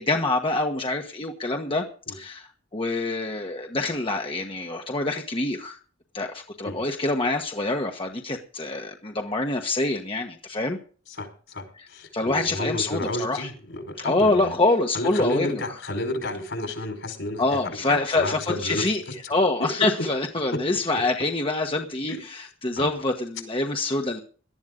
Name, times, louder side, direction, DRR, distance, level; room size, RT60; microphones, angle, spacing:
voice 1, 0.0-5.8 6.1-10.8 12.1-13.5 14.0-15.6 17.4-19.0 19.3-24.2, left 2 dB, 30° left, 1.3 m, -26 dB
voice 2, 11.1-14.5 14.9-19.3 19.6-19.7 22.1-22.2 22.8-22.9, left 1 dB, 70° left, 4.9 m, -32 dB
18.5 x 12.5 x 3.8 m
head